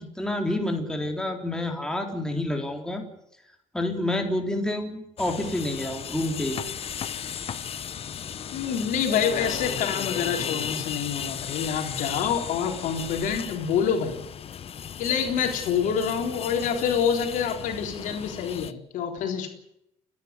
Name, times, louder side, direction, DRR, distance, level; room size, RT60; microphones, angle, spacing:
voice 1, 0.0-3.0 3.7-6.6, left 1 dB, 5° left, 3 dB, 3.9 m, -28 dB
sound 1, 5.2-18.7, left 8 dB, 45° left, 1.1 m, -35 dB
voice 2, 8.5-14.2 15.0-19.5, left 7 dB, 75° left, 3 dB, 3.7 m, -27 dB
30.0 x 11.0 x 9.7 m, 0.80 s
cardioid pair, 95°, 14 cm